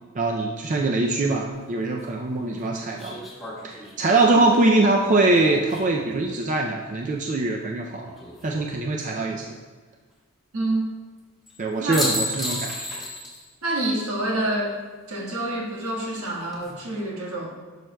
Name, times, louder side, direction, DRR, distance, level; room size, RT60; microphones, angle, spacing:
voice 1, 0.0-3.2 3.6-8.1 8.4-9.5 11.6-12.7, right 2 dB, 35° right, 1 dB, 0.4 m, -23 dB
sound 1, 1.5-1.6 3.0-6.2 8.0-8.7 11.5-11.6 11.9-13.5 13.8-13.9 16.2-16.7, left 1 dB, ahead, 1.5 m, -33 dB
voice 2, 10.5-10.9 11.8-12.1 13.6-14.8 15.1-17.5, right 1 dB, 75° right, -2 dB, 1.5 m, -27 dB
11.5 x 6.2 x 2.2 m, 1.5 s
head